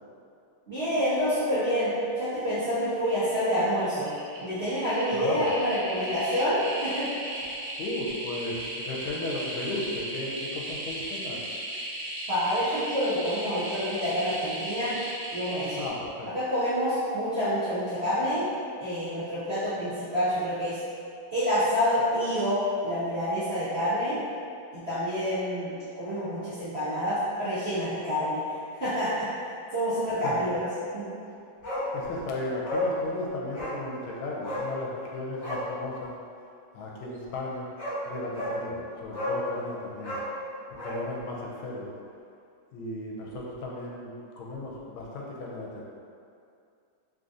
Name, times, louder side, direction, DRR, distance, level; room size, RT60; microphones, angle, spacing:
voice 1, 0.7-4.1 4.4-7.1 12.3-14.9 15.3-15.8 16.3-18.4 18.8-20.8 21.3-24.2 24.7-28.4 28.8-29.3 29.7-30.7 30.9-31.1, equal, 90° right, -15 dB, 0.5 m, -27 dB
sound 1, 2.5-2.7 3.0-3.6 4.0-15.9, right 1 dB, 65° right, 1.2 m, -36 dB
voice 2, 5.1-5.5 7.8-11.4 15.8-16.3 30.2-30.6 31.9-36.1 36.7-37.7 38.0-40.2 40.7-41.9 42.7-45.8, left 2 dB, 80° left, -3 dB, 1.4 m, -35 dB
Bark, 31.6-31.9 32.2-32.3 32.6-32.9 33.5-33.8 34.4-34.7 35.4-35.7 37.3-37.4 37.8-38.0 38.3-38.6 39.1-39.4 40.0-41.0 41.3-41.4, left 1 dB, 45° left, 1.0 m, -32 dB
3.6 x 2.6 x 2.4 m, 2.5 s
omnidirectional pair, 2.4 m